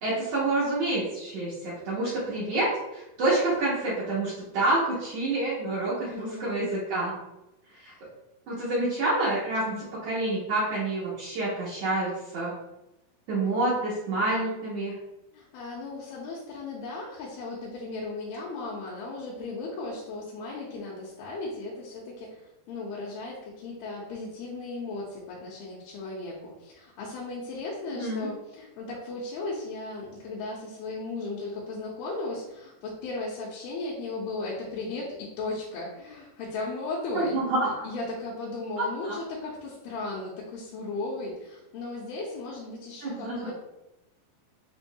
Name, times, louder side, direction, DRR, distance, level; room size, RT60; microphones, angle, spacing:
voice 1, 0.0-7.1 7.8-7.9 8.5-9.7 10.0-12.5 13.3-14.9 28.0-28.3 37.1-37.7 38.8-39.2 43.0-43.5, right 2 dB, 80° right, -7 dB, 1.4 m, -28 dB
voice 2, 6.1-6.6 7.8-7.9 15.3-43.5, left 3 dB, 85° left, -6 dB, 2.6 m, -36 dB
6.8 x 2.6 x 2.3 m, 0.92 s
omnidirectional pair, 4.2 m